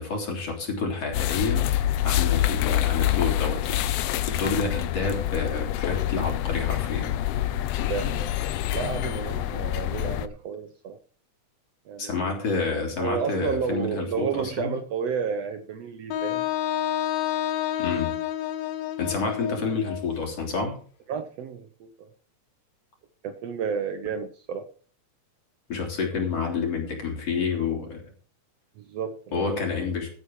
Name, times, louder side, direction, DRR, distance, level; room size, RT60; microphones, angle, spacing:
voice 1, 0.0-1.7 2.0-3.8 4.3-7.1 12.0-14.7 17.8-18.1 19.0-20.8 25.7-28.0 29.3-30.1, left 4 dB, 50° left, 1 dB, 4.3 m, -28 dB
sound 1, 1.1-10.3, left 13 dB, 90° left, 1.3 m, -26 dB
voice 2, 7.9-8.4 8.7-11.0 11.9-12.2 13.0-16.5 21.1-22.1 23.2-24.7 26.1-26.2 28.8-29.6, right 6 dB, 70° right, 8 dB, 1.7 m, -31 dB
Wind instrument woodwind instrument, 16.1-20.1, left 11 dB, 65° left, 2.0 m, -29 dB
15.0 x 8.4 x 4.7 m, 0.42 s
omnidirectional pair, 3.6 m